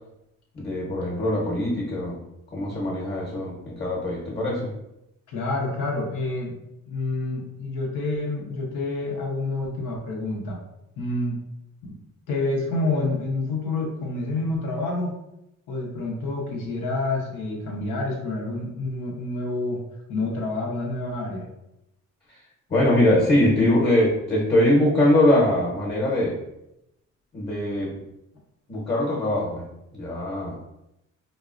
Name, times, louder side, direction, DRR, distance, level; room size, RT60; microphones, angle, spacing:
voice 1, 0.5-2.2 2.5-4.7 22.7-26.4 27.3-27.9 28.7-29.7 29.9-30.6, left 1 dB, 35° left, -4 dB, 1.0 m, -22 dB
voice 2, 5.3-6.5 6.9-10.6 11.0-11.3 11.9-12.0 12.3-15.1 15.7-19.8 20.1-21.5, left 2 dB, 90° left, -1 dB, 0.9 m, -28 dB
3.8 x 2.1 x 2.5 m, 0.86 s
cardioid pair, 90°, 30 cm